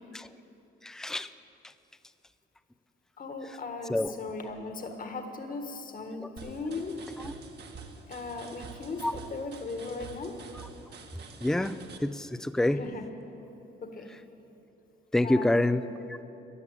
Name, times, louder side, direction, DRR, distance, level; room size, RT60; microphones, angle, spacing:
voice 1, 0.8-1.3 3.9-4.1 6.2-6.3 7.2-7.3 9.0-9.1 11.4-12.8 15.1-15.8 16.1-16.2, left 1 dB, 5° left, 13 dB, 0.5 m, -27 dB
voice 2, 3.2-7.0 8.1-10.4 12.7-13.1 13.8-14.1 15.2-15.5, left 3 dB, 45° left, 5 dB, 1.7 m, -38 dB
sound 1, 6.4-12.0, right 5 dB, 55° right, 1.5 m, -47 dB
13.5 x 11.0 x 8.6 m, 2.9 s
cardioid pair, 90°, 20 cm